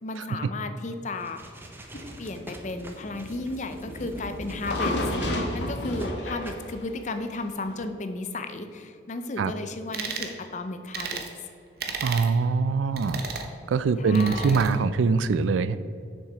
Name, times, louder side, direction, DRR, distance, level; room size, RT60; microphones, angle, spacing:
voice 1, 0.0-1.4 2.2-4.9 5.5-11.2 14.0-14.7, left 2 dB, 40° left, 8 dB, 0.5 m, -34 dB
sound 1, 1.1-5.4 5.9-6.1 6.4-6.7, right 1 dB, 10° right, 0.6 m, -45 dB
sound 2, 1.9-7.8, left 1 dB, 65° left, 1.2 m, -32 dB
sound 3, 9.9-10.3 10.9-11.3 11.8-12.3 13.0-13.5 14.1-14.7, right 5 dB, 55° right, 0.8 m, -33 dB
voice 2, 12.0-13.2 13.7-15.8, right 4 dB, 85° right, 14 dB, 0.4 m, -23 dB
6.6 x 6.3 x 4.8 m, 2.5 s
head